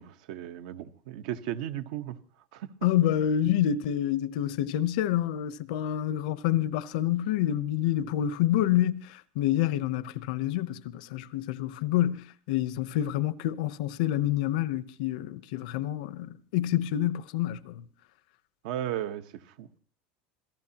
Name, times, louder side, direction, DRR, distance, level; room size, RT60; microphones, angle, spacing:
voice 1, 0.0-2.2 2.5-2.7 18.6-19.7, right 12 dB, 70° right, 1.1 m, -35 dB
voice 2, 2.8-17.8, left 12 dB, 75° left, 0.8 m, -28 dB
27.0 x 17.5 x 2.9 m
cardioid pair, 165°, 4 cm